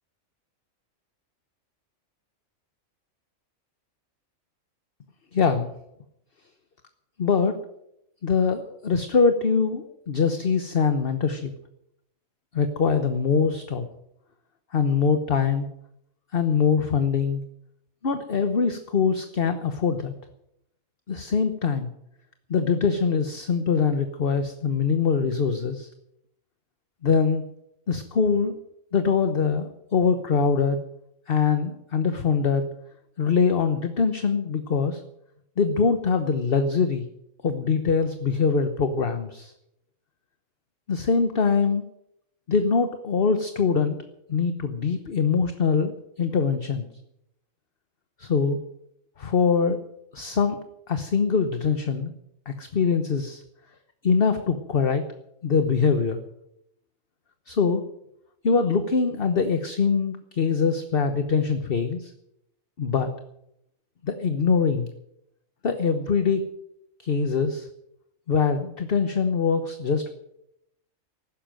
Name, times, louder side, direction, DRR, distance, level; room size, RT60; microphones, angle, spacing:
voice 1, 5.3-5.7 7.2-7.6 8.2-11.5 12.5-13.9 14.7-15.7 16.3-17.4 18.0-20.1 21.1-21.9 22.5-25.9 27.0-27.4 27.9-28.6 28.9-30.8 31.3-32.7 33.2-35.0 35.6-37.0 37.4-39.5 40.9-41.8 42.5-44.0 44.3-46.9 48.2-48.6 49.2-49.8 50.1-50.6 50.9-52.1 52.5-53.4 54.0-55.0 55.4-56.2 57.5-57.8 58.4-62.1 62.8-63.1 64.0-64.9 65.6-66.5 67.0-67.7 68.3-70.1, left 5 dB, 45° left, 8 dB, 1.2 m, -23 dB
15.5 x 12.0 x 7.7 m, 0.80 s
omnidirectional pair, 1.4 m